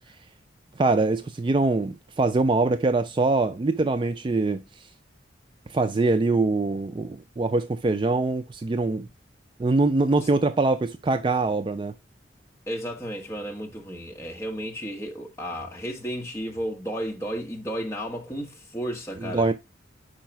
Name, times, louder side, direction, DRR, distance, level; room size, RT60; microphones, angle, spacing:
voice 1, 0.8-4.6 5.7-9.1 9.6-11.9 19.3-19.5, right 3 dB, 25° right, 0.3 m, -23 dB
voice 2, 12.7-19.4, equal, 15° left, 1.2 m, -33 dB
5.1 x 4.7 x 4.4 m
head